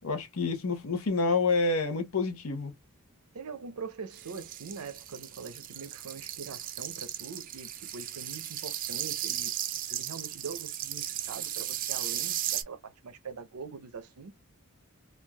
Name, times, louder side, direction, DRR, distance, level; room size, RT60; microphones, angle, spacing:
voice 1, 0.0-2.7, left 3 dB, 75° left, 0.7 m, -28 dB
voice 2, 3.3-9.5 9.9-14.3, right 5 dB, 85° right, 0.6 m, -43 dB
sound 1, 4.1-12.6, right 12 dB, 40° right, 0.4 m, -36 dB
3.2 x 2.3 x 2.2 m
head